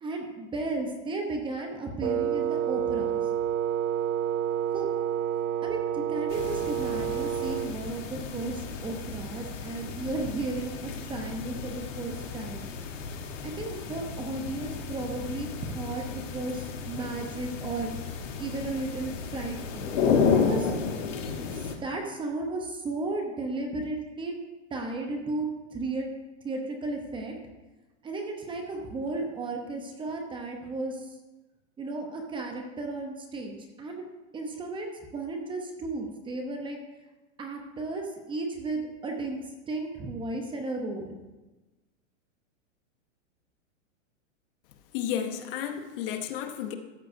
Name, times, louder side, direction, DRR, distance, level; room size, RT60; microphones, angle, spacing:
voice 1, 0.0-3.2 4.7-4.9 5.6-12.7 13.6-18.0 18.4-19.9 20.3-20.7 21.5-24.3 24.7-25.5 25.7-26.1 26.4-27.3 28.0-31.1 31.8-34.1 34.3-36.8 37.4-41.2, right 2 dB, 15° right, 3 dB, 0.7 m, -34 dB
Wind instrument woodwind instrument, 2.0-7.8, right 9 dB, 80° right, 0.7 m, -29 dB
sound 1, 6.3-21.8, left 5 dB, 75° left, 1.4 m, -32 dB
voice 2, 44.9-46.7, left 9 dB, 45° left, 7 dB, 0.8 m, -32 dB
13.5 x 7.5 x 2.6 m, 1.1 s
hypercardioid pair, 145°, 38 cm